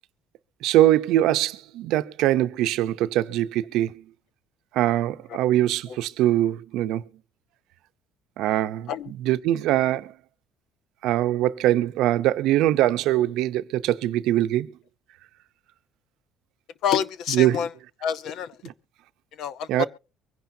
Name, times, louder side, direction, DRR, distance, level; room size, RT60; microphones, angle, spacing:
voice 1, 0.6-3.9 4.7-7.0 8.4-10.1 11.0-14.7 17.3-17.7 18.6-18.7 19.7-19.8, right 14 dB, 70° right, 0.7 m, -22 dB
voice 2, 16.8-17.7 18.0-18.5 19.4-19.9, left 8 dB, 60° left, 0.8 m, -27 dB
24.0 x 10.5 x 2.7 m
cardioid pair, 130°, 0 cm